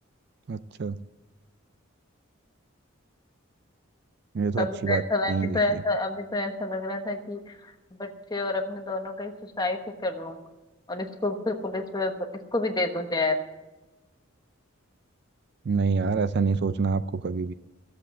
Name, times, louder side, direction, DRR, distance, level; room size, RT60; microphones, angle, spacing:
voice 1, 0.5-1.0 4.3-5.0 5.3-5.8 15.6-17.5, right 4 dB, 50° right, 14 dB, 0.4 m, -26 dB
voice 2, 4.6-10.4 10.9-12.2 12.5-13.4, left 2 dB, 20° left, 4 dB, 1.2 m, -29 dB
14.0 x 7.8 x 8.5 m, 1.1 s
head